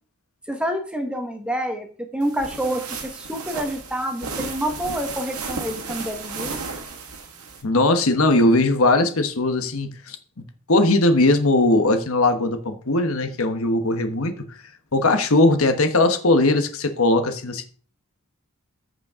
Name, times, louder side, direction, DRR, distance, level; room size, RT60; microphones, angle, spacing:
voice 1, 0.5-6.6, equal, 5° right, 1.2 m, -28 dB
sound 1, 2.2-7.6, right 4 dB, 85° right, 1.8 m, -34 dB
voice 2, 7.6-10.2 10.7-14.4 14.9-17.7, left 2 dB, 70° left, 1.1 m, -19 dB
14.0 x 5.3 x 3.6 m
head